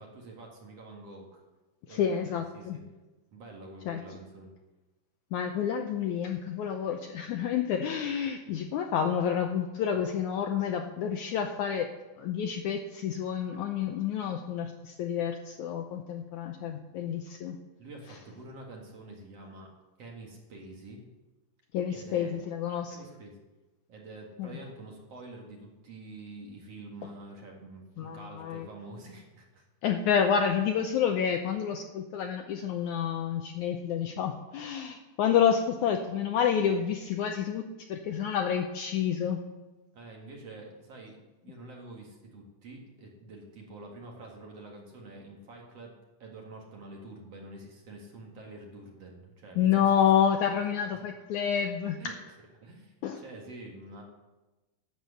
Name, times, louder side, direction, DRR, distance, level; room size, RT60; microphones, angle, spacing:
voice 1, 0.0-1.4 1.9-2.9 3.3-4.5 17.8-19.7 20.0-21.0 21.9-22.4 22.8-23.4 23.9-29.6 39.9-41.2 41.4-45.9 46.2-50.1 50.6-51.0 51.9-52.1 52.6-54.0, right 2 dB, 50° right, 0 dB, 2.5 m, -47 dB
voice 2, 1.9-2.8 3.9-4.0 5.3-11.9 12.2-17.6 21.7-23.0 24.4-24.5 28.0-28.7 29.8-37.6 37.9-39.4 49.6-52.1 53.0-53.2, left 8 dB, 80° left, 5 dB, 1.8 m, -29 dB
11.5 x 8.1 x 6.9 m, 1.1 s
omnidirectional pair, 4.1 m